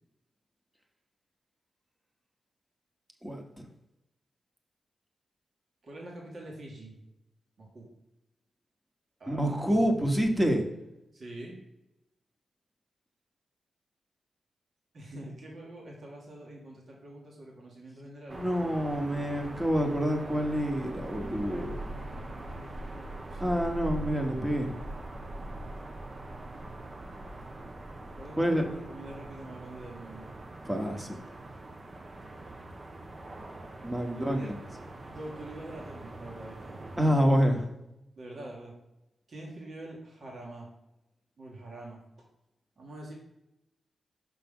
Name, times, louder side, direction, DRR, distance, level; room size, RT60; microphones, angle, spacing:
voice 1, 3.2-3.7 9.3-10.6 18.3-21.7 23.4-24.7 28.4-28.6 30.6-31.1 33.8-34.6 37.0-37.6, equal, 15° right, 3 dB, 1.3 m, -27 dB
voice 2, 5.8-6.9 7.6-7.9 9.2-9.5 11.1-11.6 14.9-18.5 21.5-23.5 28.2-30.4 34.1-34.5 35.0-36.8 38.2-38.7 39.3-40.7 41.4-42.0 42.8-43.1, right 1 dB, 60° right, -2 dB, 1.9 m, -45 dB
sound 1, 18.3-37.1, right 2 dB, 35° right, 0.7 m, -42 dB
6.0 x 5.8 x 3.7 m, 0.89 s
cardioid pair, 85°, 0 cm